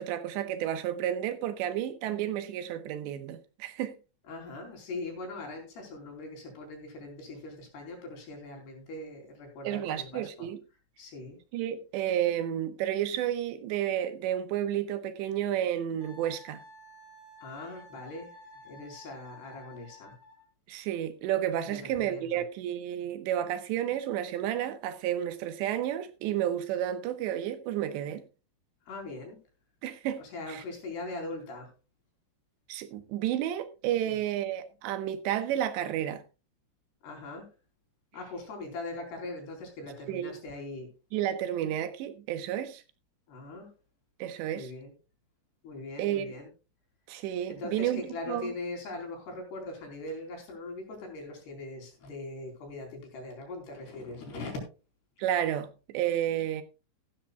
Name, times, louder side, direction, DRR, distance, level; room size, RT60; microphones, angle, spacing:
voice 1, 0.0-4.0 9.6-10.6 11.5-16.6 20.7-28.2 29.8-30.2 30.5-30.6 32.7-36.2 40.1-40.3 41.1-42.8 44.2-44.7 46.0-46.3 47.1-48.0 48.3-48.5 55.2-56.6, right 11 dB, 90° right, 3.4 m, -31 dB
voice 2, 4.3-10.5 11.0-11.4 17.4-18.3 18.6-20.2 21.6-22.4 28.9-29.4 30.2-31.7 34.0-34.2 37.0-37.5 38.1-40.9 43.3-43.7 44.5-44.9 45.6-46.5 47.5-54.6, left 2 dB, 70° left, 6.1 m, -41 dB
Wind instrument woodwind instrument, 16.0-20.5, left 1 dB, 50° left, 3.7 m, -52 dB
15.0 x 13.0 x 2.3 m
omnidirectional pair, 4.9 m